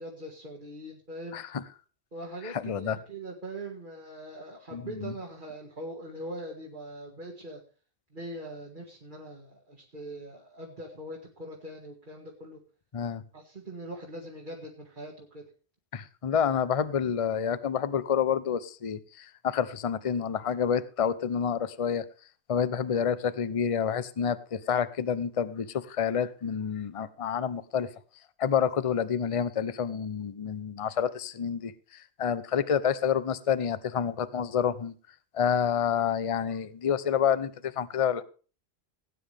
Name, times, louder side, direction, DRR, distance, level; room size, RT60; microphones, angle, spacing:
voice 1, 0.0-1.4 2.1-7.6 8.1-12.6 13.3-15.5, right 1 dB, 50° right, -1 dB, 2.3 m, -42 dB
voice 2, 1.3-1.6 2.4-3.0 4.7-5.1 12.9-13.2 15.9-22.0 22.5-27.9 28.4-34.9 35.3-38.2, left 7 dB, 35° left, 15 dB, 0.7 m, -28 dB
18.5 x 9.5 x 3.4 m, 0.37 s
omnidirectional pair, 1.1 m